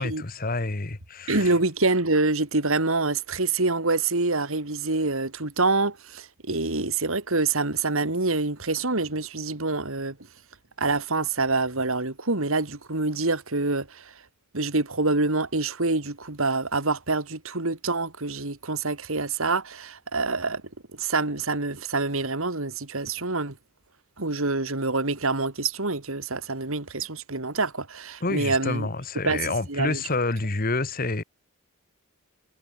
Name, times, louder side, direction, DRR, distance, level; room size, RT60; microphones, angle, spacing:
voice 1, 0.0-1.5 28.2-31.2, left 3 dB, 40° left, 1.3 m, -28 dB
voice 2, 1.3-10.2 10.8-14.2 14.5-20.6 20.9-23.6 24.2-28.9 29.2-30.0, right 3 dB, 65° right, 2.3 m, -26 dB
head